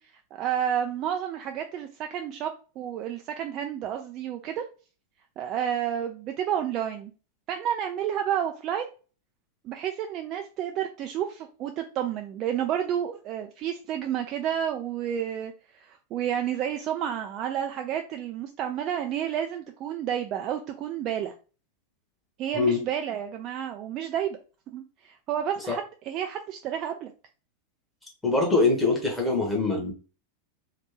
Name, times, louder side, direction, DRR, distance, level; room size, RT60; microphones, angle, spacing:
voice 1, 0.3-2.5 2.8-4.6 5.4-7.1 7.5-8.9 9.6-21.3 22.4-24.4 24.7-27.1, right 9 dB, 35° right, 4 dB, 0.3 m, -30 dB
voice 2, 28.2-29.9, left 3 dB, 10° left, -1 dB, 1.3 m, -23 dB
3.4 x 2.4 x 3.2 m, 0.36 s
figure-of-eight pair, 90°, 0 cm